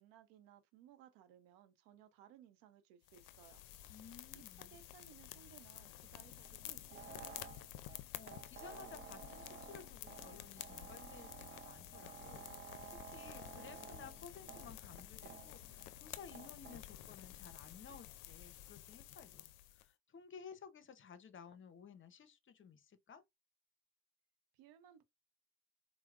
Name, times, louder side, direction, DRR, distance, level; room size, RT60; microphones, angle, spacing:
voice 1, 0.0-3.6 4.3-7.5 24.5-25.0, right 10 dB, 85° right, 0.7 m, -62 dB
sound 1, 3.1-19.9, left 13 dB, 75° left, 0.5 m, -52 dB
voice 2, 3.9-4.8 7.9-23.2, left 6 dB, 35° left, 0.6 m, -56 dB
sound 2, 6.2-16.8, right 8 dB, 35° right, 0.5 m, -55 dB
4.4 x 2.1 x 2.4 m
supercardioid pair, 75°, 34 cm